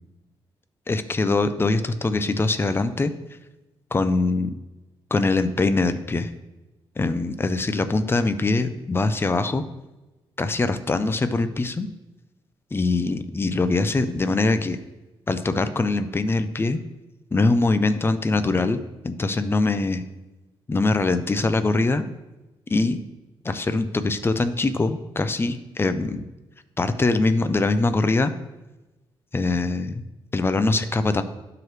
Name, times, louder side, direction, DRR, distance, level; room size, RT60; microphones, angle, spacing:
voice 1, 0.9-3.1 3.9-4.5 5.1-6.3 7.0-9.6 10.4-11.9 12.7-14.8 15.3-16.8 17.3-20.0 20.7-22.0 22.7-23.0 23.4-26.2 26.8-28.3 29.3-30.0 30.3-31.2, left 3 dB, 25° left, 10 dB, 0.6 m, -23 dB
12.0 x 4.8 x 3.2 m, 1.1 s
cardioid pair, 75°, 9 cm